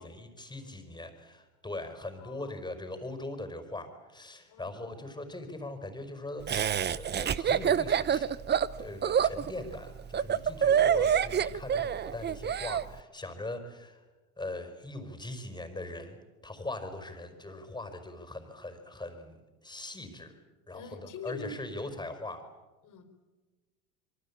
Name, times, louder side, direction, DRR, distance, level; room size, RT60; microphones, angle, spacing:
voice 1, 0.0-8.3 8.8-14.0 14.4-16.2 16.4-19.4 19.6-20.4 20.7-22.4, left 2 dB, 10° left, 7 dB, 5.0 m, -41 dB
voice 2, 2.2-2.6 4.5-4.9 10.5-11.0 20.7-21.6 22.8-23.1, left 4 dB, 40° left, 8 dB, 4.3 m, -46 dB
Laughter, 6.5-12.8, right 8 dB, 25° right, 0.8 m, -27 dB
26.5 x 24.0 x 8.7 m, 1.2 s
hypercardioid pair, 90°, 46 cm